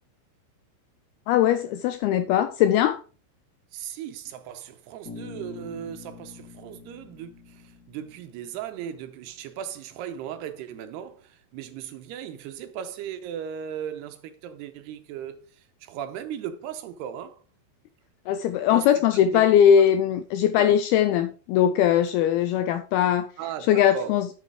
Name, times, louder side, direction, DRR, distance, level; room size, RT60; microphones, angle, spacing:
voice 1, 1.3-3.0 18.3-23.3 23.7-24.3, left 9 dB, 85° left, 2.2 m, -20 dB
voice 2, 3.7-17.4 18.7-19.9 20.6-20.8 23.4-24.1, right 9 dB, 80° right, 2.7 m, -37 dB
Bass guitar, 5.1-9.1, left 5 dB, 30° left, 1.9 m, -45 dB
8.3 x 7.2 x 4.8 m
omnidirectional pair, 5.0 m